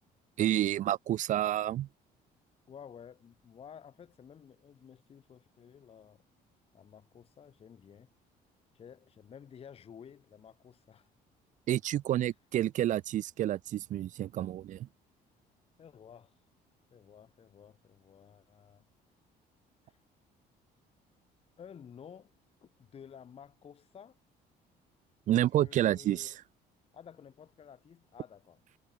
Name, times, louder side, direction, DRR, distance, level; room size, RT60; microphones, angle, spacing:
voice 1, 0.4-1.9 11.7-14.9 25.3-26.4, right 12 dB, 50° right, 0.4 m, -29 dB
voice 2, 2.7-6.2 6.7-8.1 8.7-11.1 15.8-16.4 16.9-18.8 19.8-20.0 21.6-22.3 22.6-24.2 25.6-26.3 26.9-28.6, left 8 dB, 35° left, 0.8 m, -53 dB
cardioid pair, 110°, 17 cm